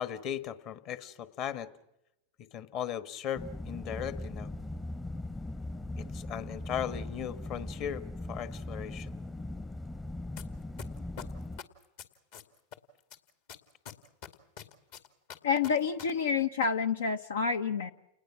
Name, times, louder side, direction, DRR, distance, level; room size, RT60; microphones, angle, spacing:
voice 1, 0.0-1.7 2.5-4.5 6.0-9.2, left 9 dB, 45° left, 12 dB, 1.5 m, -37 dB
sound 1, 3.4-11.6, left 2 dB, 10° left, 0.7 m, -39 dB
sound 2, 10.4-10.5 10.8-12.8 13.1-16.0 16.3-16.4, left 8 dB, 65° left, 2.4 m, -44 dB
voice 2, 15.4-17.9, left 6 dB, 85° left, 10 dB, 0.8 m, -28 dB
29.5 x 20.0 x 6.2 m, 0.88 s
hypercardioid pair, 105°, 0 cm